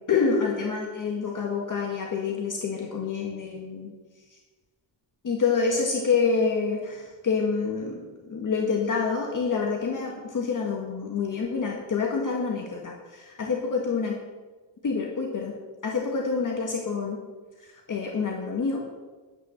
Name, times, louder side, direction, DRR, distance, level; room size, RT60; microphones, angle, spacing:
voice 1, 0.1-3.9 5.2-14.2 14.8-15.5 15.8-17.2 17.6-18.8, left 5 dB, 40° left, 0 dB, 1.8 m, -27 dB
11.0 x 9.1 x 7.2 m, 1.3 s
wide cardioid pair, 170°, 46 cm